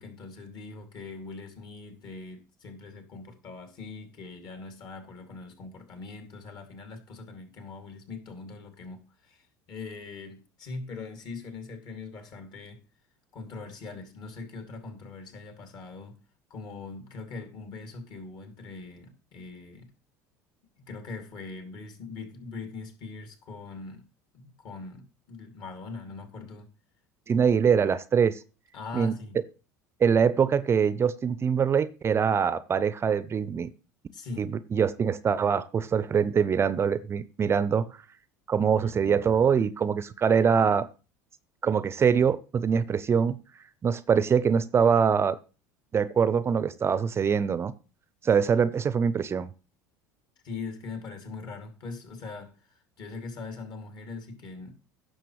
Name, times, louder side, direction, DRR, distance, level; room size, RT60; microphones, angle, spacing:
voice 1, 0.0-12.8 13.3-16.2 16.5-19.9 20.8-24.1 24.3-26.7 28.7-29.4 34.1-34.5 50.4-54.7, left 3 dB, 50° left, 2.6 m, -41 dB
voice 2, 27.3-28.4 28.9-29.1 30.0-33.7 34.4-37.8 38.5-40.9 41.6-43.4 43.8-45.4 45.9-47.7 48.2-49.5, right 6 dB, 30° right, 0.5 m, -24 dB
16.0 x 6.5 x 3.2 m
figure-of-eight pair, 70°, 9 cm